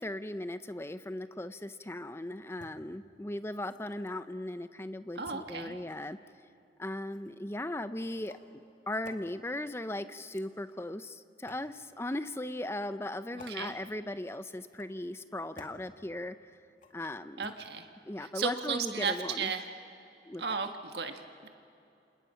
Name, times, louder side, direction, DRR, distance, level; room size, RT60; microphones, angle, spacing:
voice 1, 0.0-6.2 6.8-8.4 8.9-16.4 16.9-17.5 18.1-19.5 20.3-20.7, left 1 dB, 15° left, 12 dB, 0.6 m, -38 dB
sound 1, 2.5-2.7 3.6-4.2 5.2-6.1 7.1-7.3 8.1-8.5 9.0-9.2 10.2-10.8 11.5-11.7 12.5-12.8 13.4-13.6 14.6-15.1 15.6-15.8 16.8-17.1 17.4-17.5, left 2 dB, 45° left, 2.1 m, -54 dB
voice 2, 5.1-5.8 13.3-13.7 17.4-17.9 18.2-19.7 20.4-21.5, right 5 dB, 70° right, 6 dB, 1.7 m, -35 dB
29.0 x 27.5 x 5.8 m, 2.8 s
head